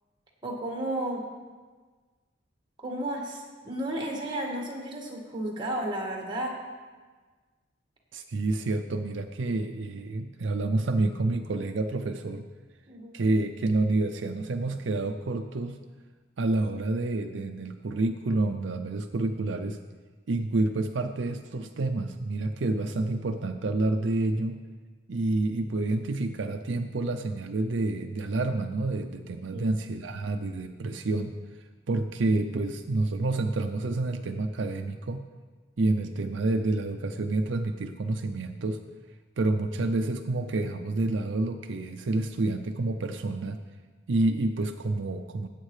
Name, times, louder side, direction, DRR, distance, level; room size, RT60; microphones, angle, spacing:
voice 1, 0.4-1.2 2.8-6.6 12.9-13.1 29.5-29.7, right 1 dB, 25° right, 0 dB, 1.8 m, -33 dB
voice 2, 8.1-12.5 13.1-15.8 16.4-19.8 20.3-24.6 25.1-31.3 31.9-35.3 35.8-38.8 39.4-43.6 44.1-45.5, right 2 dB, 70° right, 6 dB, 0.5 m, -28 dB
17.5 x 8.3 x 3.3 m, 1.4 s
head